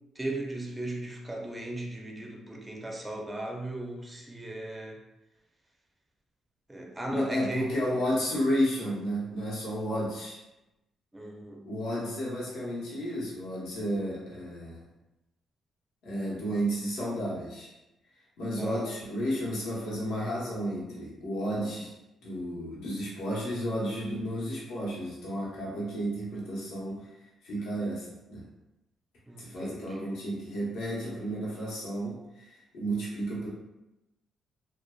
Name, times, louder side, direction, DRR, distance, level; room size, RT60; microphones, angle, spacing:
voice 1, 0.2-5.0 6.7-8.0 11.1-11.6 18.6-18.9 29.3-30.2, right 2 dB, 15° right, 0 dB, 0.4 m, -37 dB
voice 2, 7.1-10.4 11.6-14.9 16.0-17.7 18.4-21.9 22.2-27.1 27.4-28.4 29.4-33.5, equal, 85° left, -6 dB, 0.8 m, -32 dB
2.5 x 2.2 x 2.2 m, 0.96 s
cardioid pair, 90°, 0 cm